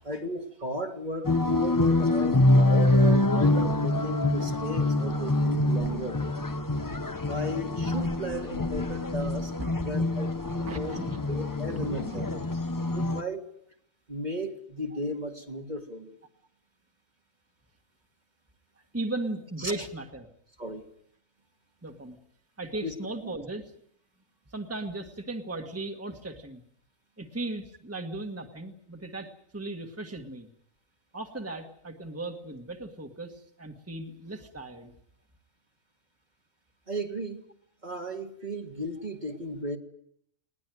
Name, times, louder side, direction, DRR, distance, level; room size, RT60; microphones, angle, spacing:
voice 1, 0.0-6.2 7.3-9.5 9.8-11.0 11.3-12.4 12.9-13.5 14.1-16.2 19.6-19.9 20.6-20.9 22.8-22.9 23.2-23.3 36.9-37.4 37.8-39.8, equal, 35° right, 4 dB, 1.9 m, -35 dB
sound 1, 1.2-13.2, left 2 dB, 20° left, 0.7 m, -25 dB
voice 2, 10.6-11.2 11.7-12.3 12.7-13.0 18.9-20.3 21.8-22.2 22.6-23.7 24.5-26.6 27.2-30.5 31.1-34.9, right 2 dB, 10° right, 4 dB, 1.6 m, -37 dB
20.5 x 19.0 x 9.3 m, 0.70 s
omnidirectional pair, 1.4 m